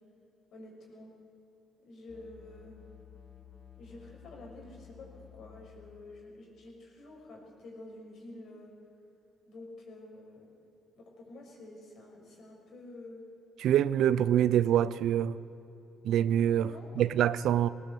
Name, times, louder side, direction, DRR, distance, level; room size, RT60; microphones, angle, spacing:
voice 1, 0.5-1.1 1.8-2.7 3.7-8.7 9.5-10.5 10.9-13.2 16.6-17.1, left 2 dB, 70° left, 0 dB, 6.4 m, -49 dB
sound 1, 2.1-6.2, left 8 dB, 20° left, 4.3 m, -54 dB
voice 2, 13.6-15.4 16.0-17.7, right 10 dB, 80° right, 16 dB, 0.6 m, -25 dB
20.0 x 18.5 x 8.3 m, 2.9 s
cardioid pair, 90°, 0 cm